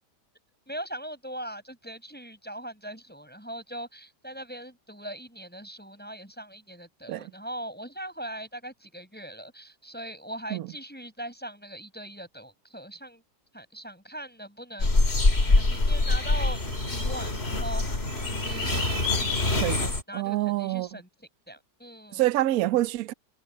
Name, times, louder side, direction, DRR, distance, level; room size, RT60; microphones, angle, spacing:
voice 1, 0.7-13.2 13.5-15.1 15.4-16.6 16.9-17.8 18.3-22.2, right 1 dB, 5° left, 6.7 m, -40 dB
sound 1, 14.8-20.0, left 2 dB, 35° left, 3.2 m, -24 dB
voice 2, 20.1-21.0 22.1-23.1, right 15 dB, 65° right, 1.1 m, -26 dB
omnidirectional pair, 1.8 m